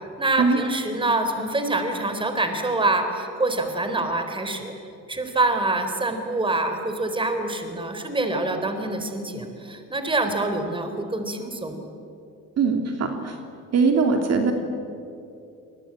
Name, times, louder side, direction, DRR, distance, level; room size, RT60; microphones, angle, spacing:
voice 1, 0.2-4.7 5.1-11.8, right 2 dB, 15° right, 7 dB, 4.0 m, -25 dB
voice 2, 12.6-13.4 13.7-14.5, right 4 dB, 50° right, 4 dB, 2.9 m, -21 dB
27.5 x 21.5 x 8.9 m, 2.6 s
cardioid pair, 100°, 33 cm